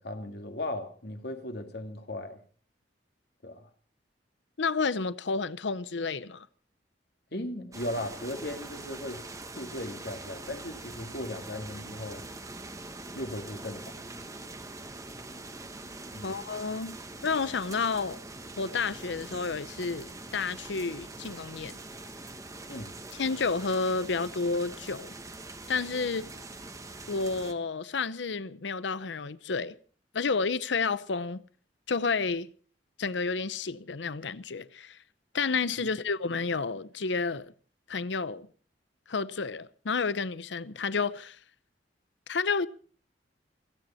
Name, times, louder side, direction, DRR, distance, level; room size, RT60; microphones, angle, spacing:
voice 1, 0.0-2.4 3.4-3.7 7.3-9.3 9.6-12.2 13.1-14.2 16.1-16.4 22.7-22.9 35.8-35.9, left 1 dB, 60° left, 2.1 m, -37 dB
voice 2, 4.6-6.5 16.2-17.0 17.2-18.2 18.6-21.8 23.1-25.1 25.7-26.3 27.1-29.8 30.1-31.4 31.9-32.5 33.0-35.0 35.3-37.5 37.9-38.5 39.1-41.4 42.3-42.7, left 4 dB, 80° left, 0.7 m, -30 dB
sound 1, 7.7-27.5, right 2 dB, 20° right, 1.3 m, -43 dB
28.5 x 9.8 x 4.3 m
head